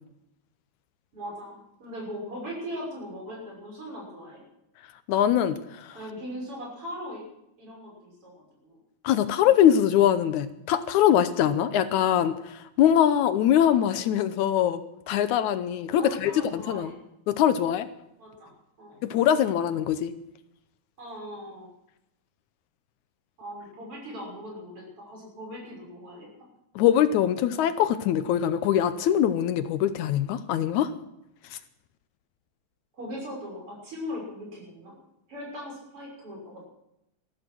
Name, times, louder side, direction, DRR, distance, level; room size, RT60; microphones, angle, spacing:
voice 1, 1.1-4.4 5.9-7.2 7.6-8.8 16.0-16.9 18.2-18.5 18.8-19.0 21.0-21.7 23.4-26.5 32.9-34.9 35.3-36.7, equal, 45° right, -1 dB, 6.9 m, -39 dB
voice 2, 5.1-6.0 9.0-16.9 17.3-17.9 19.0-20.1 26.8-30.9 31.5-31.6, left 10 dB, 80° left, 12 dB, 2.1 m, -23 dB
14.5 x 14.0 x 6.2 m, 0.83 s
omnidirectional pair, 3.5 m